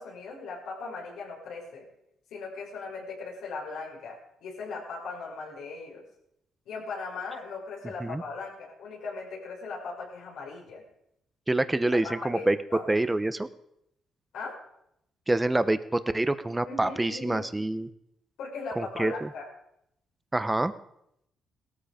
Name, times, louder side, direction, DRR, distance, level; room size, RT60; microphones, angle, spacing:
voice 1, 0.0-1.8 2.3-6.0 6.7-10.8 12.0-12.4 12.7-12.8 14.3-14.5 16.7-17.4 18.4-19.4, left 4 dB, 85° left, -2 dB, 6.0 m, -38 dB
voice 2, 11.5-12.6 12.9-13.5 15.3-17.9 18.8-19.3 20.3-20.7, right 2 dB, 15° right, 13 dB, 0.9 m, -26 dB
17.0 x 13.5 x 5.1 m, 0.77 s
cardioid pair, 90°, 0 cm